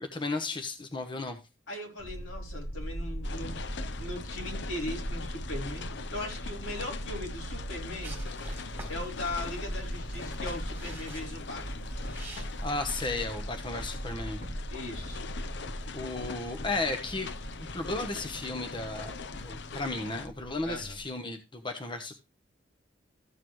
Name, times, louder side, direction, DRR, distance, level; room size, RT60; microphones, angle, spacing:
voice 1, 0.1-1.4 12.6-14.4 15.9-17.3 17.7-22.2, left 2 dB, 25° left, 1.1 m, -34 dB
voice 2, 1.7-3.6 4.0-8.2 8.9-11.9 14.7-15.2 20.7-21.0, left 1 dB, 80° left, 4.0 m, -39 dB
sound 1, 2.0-21.1, equal, 45° left, 5.4 m, -39 dB
sound 2, 3.2-20.3, left 5 dB, 60° left, 0.7 m, -43 dB
sound 3, 8.0-13.1, right 2 dB, 10° right, 3.6 m, -49 dB
14.0 x 6.7 x 3.2 m
head